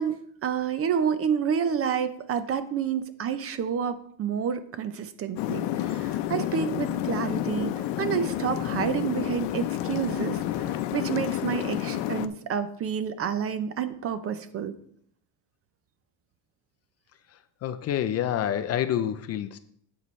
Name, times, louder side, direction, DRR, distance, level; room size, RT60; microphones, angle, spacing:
voice 1, 0.0-7.7 8.0-14.7, right 7 dB, 35° right, 12 dB, 0.6 m, -29 dB
sound 1, 5.4-12.3, left 12 dB, 75° left, 0.7 m, -29 dB
voice 2, 17.6-19.6, left 10 dB, 40° left, 10 dB, 0.4 m, -27 dB
9.4 x 8.6 x 3.1 m, 0.65 s
cardioid pair, 155°, 42 cm